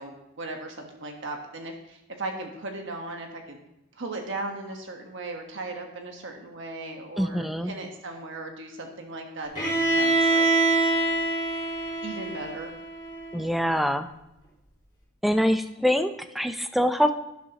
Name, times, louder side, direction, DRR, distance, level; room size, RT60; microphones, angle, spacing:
voice 1, 0.0-3.6 3.9-10.5 12.0-12.7, right 2 dB, 60° right, 3 dB, 1.4 m, -37 dB
voice 2, 7.2-7.7 13.3-14.1 15.2-17.1, equal, ahead, 8 dB, 0.5 m, -24 dB
Bowed string instrument, 9.5-13.4, right 3 dB, 20° left, 4.5 m, -25 dB
12.0 x 11.0 x 3.0 m, 0.89 s
head